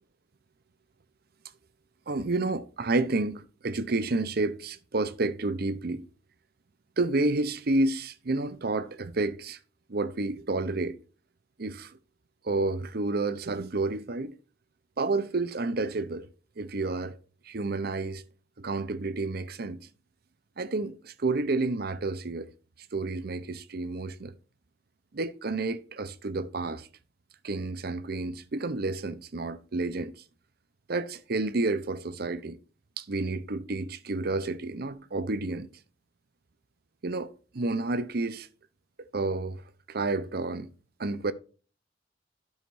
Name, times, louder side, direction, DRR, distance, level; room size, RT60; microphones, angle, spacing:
voice 1, 2.1-6.1 7.0-9.6 9.9-11.0 11.6-12.0 12.4-14.4 15.0-16.3 16.6-17.2 17.4-18.2 18.6-19.9 20.6-22.5 22.9-24.3 25.1-26.9 27.4-30.1 30.9-32.6 33.0-35.7 37.0-38.5 39.0-39.6 39.9-40.7 41.0-41.3, right 2 dB, 60° right, 0.7 m, -30 dB
12.0 x 6.5 x 2.6 m
head